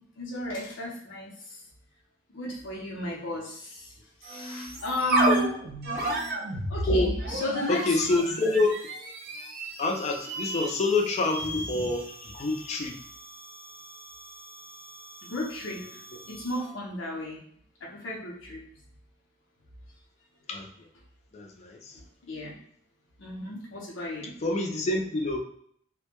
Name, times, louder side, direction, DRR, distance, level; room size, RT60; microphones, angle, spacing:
voice 1, 0.2-1.3 2.3-3.9 4.2-5.5 6.7-8.0 15.3-15.8 16.3-17.4 17.8-18.6 22.3-22.5 23.2-24.3, left 1 dB, 85° left, -3 dB, 0.7 m, -33 dB
sound 1, 4.2-16.7, right 1 dB, 50° right, 0.5 m, -33 dB
voice 2, 7.7-8.8 9.8-13.0 20.5-20.7 21.3-22.0 24.4-25.4, left 2 dB, 35° left, 2 dB, 0.4 m, -27 dB
2.2 x 2.1 x 2.8 m, 0.63 s
head